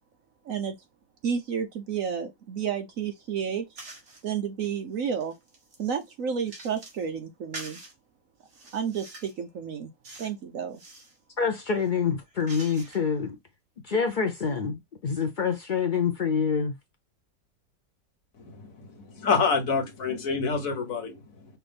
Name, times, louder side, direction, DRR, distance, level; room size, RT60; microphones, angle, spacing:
voice 1, 1.2-3.6 4.2-5.3 5.8-7.8 8.7-9.9 10.2-10.8, right 7 dB, 60° right, 0.9 m, -31 dB
sound 1, 3.8-4.3 4.8-7.0 7.5-7.9 8.5-9.4 10.0-10.4 10.7-11.2 11.7-13.2, right 2 dB, 40° right, 1.8 m, -45 dB
voice 2, 11.4-13.4 13.8-16.8, left 6 dB, 85° left, 0.4 m, -26 dB
voice 3, 18.4-21.5, left 5 dB, 55° left, 1.4 m, -28 dB
5.9 x 2.6 x 3.4 m
omnidirectional pair, 1.9 m